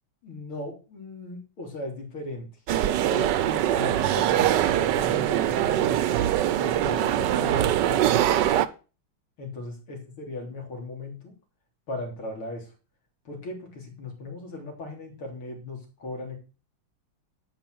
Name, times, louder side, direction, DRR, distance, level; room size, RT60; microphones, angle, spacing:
voice 1, 0.2-2.5 3.1-6.2 6.6-8.3 9.4-11.3 11.9-12.7 13.3-16.4, left 2 dB, 85° left, 1 dB, 4.1 m, -37 dB
sound 1, 2.7-8.7, right 12 dB, 70° right, 1.2 m, -23 dB
11.5 x 4.5 x 7.7 m, 0.34 s
omnidirectional pair, 2.3 m